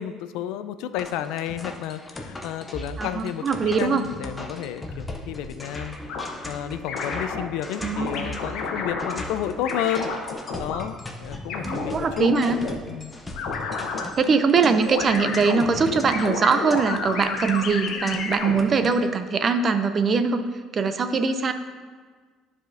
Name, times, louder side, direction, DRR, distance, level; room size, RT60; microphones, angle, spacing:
voice 1, 0.0-6.0 6.4-10.1 10.6-12.3 12.8-13.1, left 10 dB, 85° left, 11 dB, 0.3 m, -31 dB
sound 1, 1.0-18.9, left 1 dB, 10° left, 0.6 m, -38 dB
voice 2, 3.0-4.0 7.8-8.3 11.6-12.6 14.2-20.4 20.7-21.5, right 5 dB, 30° right, 9 dB, 0.4 m, -22 dB
sound 2, 6.1-6.3 6.9-7.4 8.0-9.2 9.6-10.8 11.5-12.7 13.4-14.1 14.8-18.6, left 5 dB, 65° left, 0.9 m, -30 dB
12.0 x 4.9 x 2.6 m, 1.5 s
cardioid pair, 165°, 0 cm